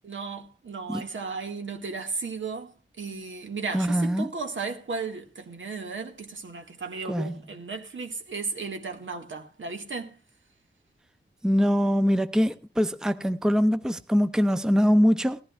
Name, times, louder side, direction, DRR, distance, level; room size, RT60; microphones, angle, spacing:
voice 1, 0.0-2.7 3.0-10.2, right 4 dB, 80° right, 1.9 m, -35 dB
voice 2, 3.7-4.3 7.1-7.4 11.4-15.4, equal, 5° right, 0.6 m, -23 dB
19.5 x 14.5 x 2.5 m
wide cardioid pair, 105°, 20 cm